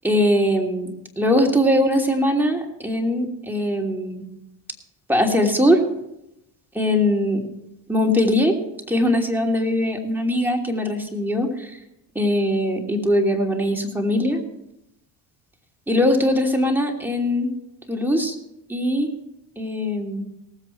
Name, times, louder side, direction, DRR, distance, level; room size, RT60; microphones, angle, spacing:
voice 1, 0.0-0.9 1.2-4.2 5.1-5.8 6.7-7.4 7.9-8.6 8.9-11.8 12.1-14.4 15.9-17.5 17.9-18.4 18.7-19.1 19.6-20.2, left 1 dB, 5° right, 0 dB, 2.9 m, -21 dB
18.5 x 8.1 x 4.6 m, 0.84 s
supercardioid pair, 75°, 44 cm